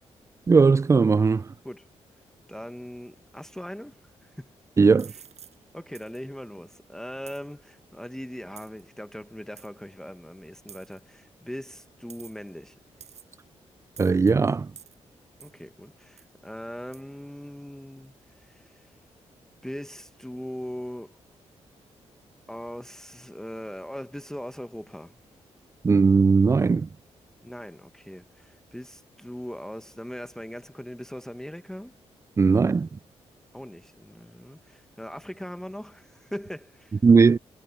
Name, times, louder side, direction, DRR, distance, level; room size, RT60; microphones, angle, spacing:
voice 1, 0.5-1.5 4.8-5.1 14.0-14.7 25.8-26.9 32.4-32.9 37.0-37.4, right 4 dB, 25° right, 0.3 m, -18 dB
voice 2, 2.5-4.5 5.1-5.2 5.7-12.8 15.4-18.8 19.6-21.2 22.5-25.2 27.4-31.9 33.5-37.0, equal, 5° left, 1.3 m, -40 dB
sound 1, 5.0-5.6 5.9-6.2 7.3-7.4 8.6-8.8 9.6-9.7 10.7-11.0 12.1-12.5 13.0-13.4 14.0-14.3 14.8-15.0 15.4-15.6 16.2-16.3 16.9-17.0, right 8 dB, 70° right, 6.2 m, -48 dB
cardioid pair, 85°, 12 cm